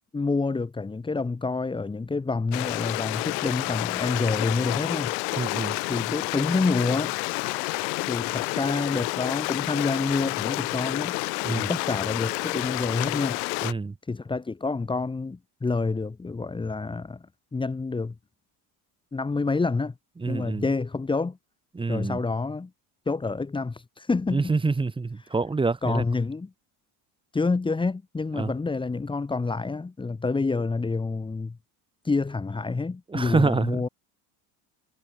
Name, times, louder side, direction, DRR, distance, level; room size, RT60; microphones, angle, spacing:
voice 1, 0.0-5.1 5.9-7.2 8.0-11.2 11.5-13.4 14.1-18.1 19.1-19.9 20.3-21.4 21.9-22.7 23.1-24.5 25.8-26.5 27.3-31.6 32.0-33.9, left 3 dB, 10° left, 4.4 m, -28 dB
Stream, 2.5-13.7, left 34 dB, 90° left, 6.7 m, -29 dB
voice 2, 5.4-5.8 11.4-11.8 13.6-13.9 20.2-20.6 21.7-22.2 24.3-26.0 28.4-28.5 33.1-33.8, right 3 dB, 10° right, 4.8 m, -26 dB
cardioid pair, 175°, 46 cm